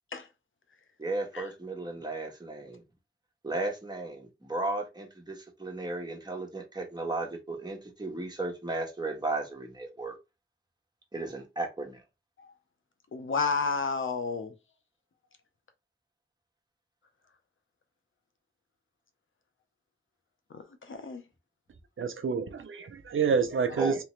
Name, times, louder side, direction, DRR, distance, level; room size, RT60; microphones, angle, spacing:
voice 1, 1.0-2.8 3.4-10.2 11.1-12.0 23.8-24.0, right 2 dB, 20° right, 1.4 m, -35 dB
voice 2, 13.1-14.5 20.5-21.2, left 4 dB, 75° left, 0.8 m, -31 dB
voice 3, 22.0-24.0, right 6 dB, 80° right, 0.6 m, -28 dB
3.4 x 2.8 x 3.2 m
cardioid pair, 50°, 21 cm